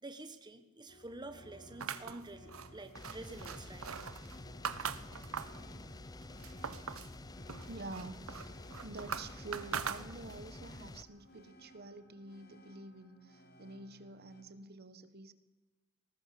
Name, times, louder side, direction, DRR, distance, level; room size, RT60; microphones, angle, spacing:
voice 1, 0.0-3.9, right 2 dB, 20° right, 8 dB, 1.2 m, -48 dB
sound 1, 0.9-14.4, equal, 50° left, 3.4 m, -58 dB
sound 2, 1.8-5.7 6.1-7.1 7.5-10.5, right 6 dB, 85° right, 1.0 m, -42 dB
sound 3, 2.9-11.0, left 2 dB, 20° left, 0.6 m, -49 dB
voice 2, 6.5-15.3, right 2 dB, 50° right, 11 dB, 1.4 m, -49 dB
21.0 x 18.5 x 6.8 m, 1.1 s
head